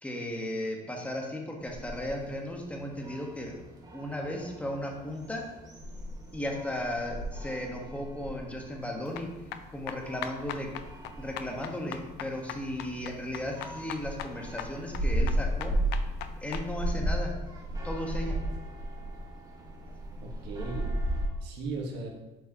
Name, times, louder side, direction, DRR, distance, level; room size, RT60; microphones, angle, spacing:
voice 1, 0.0-3.6 3.9-5.4 6.3-9.4 9.7-10.7 11.2-15.8 16.4-17.4 17.8-18.5, left 1 dB, 10° left, 0 dB, 1.1 m, -35 dB
sound 1, 1.6-21.3, right 1 dB, 20° right, 1.3 m, -35 dB
sound 2, 9.1-16.7, left 9 dB, 85° left, 0.5 m, -41 dB
voice 2, 20.2-22.1, right 3 dB, 85° right, 0 dB, 1.4 m, -38 dB
7.7 x 4.6 x 2.8 m, 1.1 s
cardioid pair, 110°, 17 cm